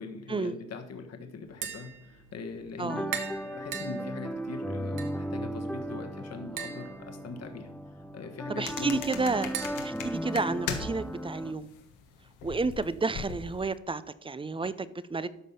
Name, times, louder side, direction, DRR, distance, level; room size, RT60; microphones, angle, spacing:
voice 1, 0.0-9.0, left 4 dB, 55° left, 6 dB, 1.4 m, -42 dB
Tap, 1.4-10.9, right 8 dB, 85° right, 1.4 m, -43 dB
voice 2, 2.8-3.1 8.5-9.5 9.8-11.7 12.4-15.3, right 3 dB, 15° right, 16 dB, 0.5 m, -31 dB
sound 1, 2.9-11.5, right 1 dB, 5° left, 0.8 m, -36 dB
sound 2, 8.6-11.1 11.4-13.7, left 7 dB, 90° left, 1.5 m, -39 dB
12.5 x 5.3 x 5.6 m, 0.88 s
cardioid pair, 90°, 30 cm